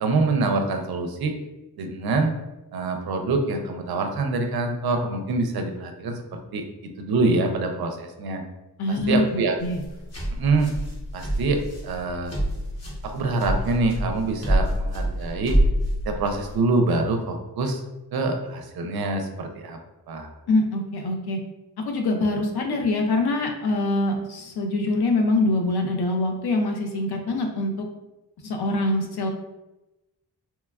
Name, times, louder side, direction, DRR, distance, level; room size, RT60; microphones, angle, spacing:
voice 1, 0.0-1.4 1.8-2.3 2.7-8.4 9.1-9.5 10.3-10.7 11.1-12.3 13.0-15.6 16.0-17.8 18.1-19.8 20.1-20.3, right 3 dB, 65° right, 5 dB, 0.5 m, -25 dB
voice 2, 8.8-9.8 20.5-21.4 21.9-27.9 28.4-29.3, left 2 dB, 70° left, 3 dB, 0.5 m, -24 dB
sound 1, 9.6-16.5, equal, 40° left, 0.9 m, -26 dB
3.0 x 2.2 x 2.2 m, 0.99 s
wide cardioid pair, 125°, 40 cm